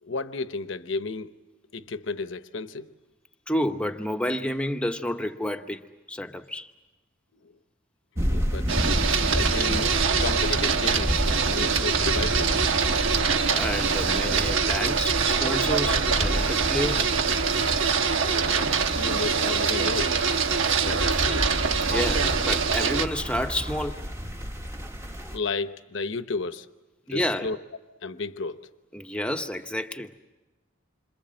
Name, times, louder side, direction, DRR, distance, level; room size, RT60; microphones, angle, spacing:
voice 1, 0.0-1.3 1.7-2.9 7.4-7.6 8.3-8.7 9.3-9.9 10.2-12.7 18.2-20.2 20.8-21.5 25.3-26.7 27.1-27.6 28.0-28.7, left 4 dB, 70° left, 1.0 m, -33 dB
voice 2, 3.5-5.8 6.1-6.7 13.3-17.1 21.9-24.0 27.1-27.5 28.9-30.1, left 1 dB, 5° left, 0.9 m, -30 dB
sound 1, 8.2-25.4, equal, 15° right, 1.2 m, -31 dB
Printer, 8.7-23.1, right 6 dB, 80° right, 1.2 m, -24 dB
sound 2, 11.4-23.9, right 1 dB, 35° right, 3.8 m, -39 dB
27.5 x 26.0 x 7.7 m
head